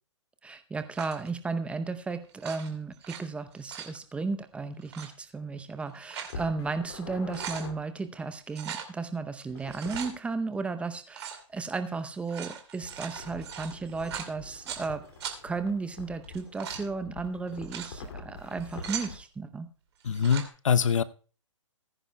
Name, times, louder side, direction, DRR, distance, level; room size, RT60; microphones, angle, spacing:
voice 1, 0.4-15.0 15.4-19.7, right 4 dB, 5° right, 0.7 m, -34 dB
sound 1, 0.9-1.3 2.3-3.2 3.5-4.0 4.8-5.1 5.8-6.4 6.8-6.9 7.1-7.7 8.5-8.9 9.6-10.1 11.1-11.4 12.1-14.9 15.2-15.4 16.2-16.9 17.5-17.9 18.5-19.1 20.0-20.5, right 8 dB, 55° right, 2.5 m, -39 dB
sound 2, 6.3-7.7 9.5-10.1 12.8-19.2, left 4 dB, 55° left, 2.5 m, -45 dB
voice 2, 20.0-21.0, left 7 dB, 75° left, 0.7 m, -24 dB
19.5 x 10.0 x 2.2 m
hypercardioid pair, 130°, 17 cm